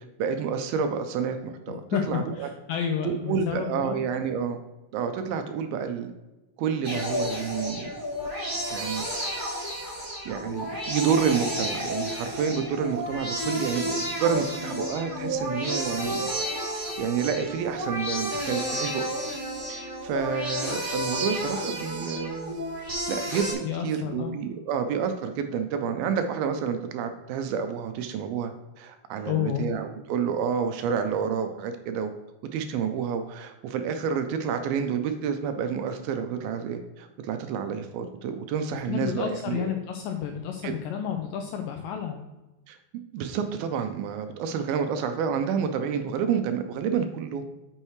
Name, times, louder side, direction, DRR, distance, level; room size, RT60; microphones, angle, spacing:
voice 1, 0.2-2.5 3.0-4.6 4.9-6.1 6.6-7.9 8.7-9.1 9.6-9.7 10.3-16.3 16.8-19.0 19.7-22.5 23.1-32.1 32.5-39.7 40.6-40.7 42.7-42.8 43.1-47.4, right 7 dB, 80° right, 7 dB, 2.3 m, -29 dB
voice 2, 1.9-4.0 23.6-24.3 29.3-29.7 38.8-42.2, left 8 dB, 90° left, 4 dB, 2.0 m, -30 dB
sound 1, 6.8-23.5, equal, 20° right, 2.6 m, -31 dB
8.7 x 6.5 x 3.1 m, 1.1 s
omnidirectional pair, 4.6 m